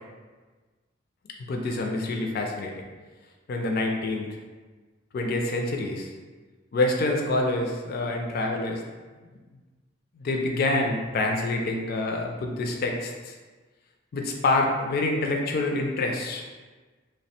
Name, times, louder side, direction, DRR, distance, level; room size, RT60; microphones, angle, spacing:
voice 1, 1.5-2.7 3.5-4.3 5.1-6.1 6.7-8.8 10.2-13.3 14.1-16.6, left 2 dB, 50° left, 1 dB, 0.4 m, -26 dB
3.1 x 2.1 x 4.1 m, 1.3 s
head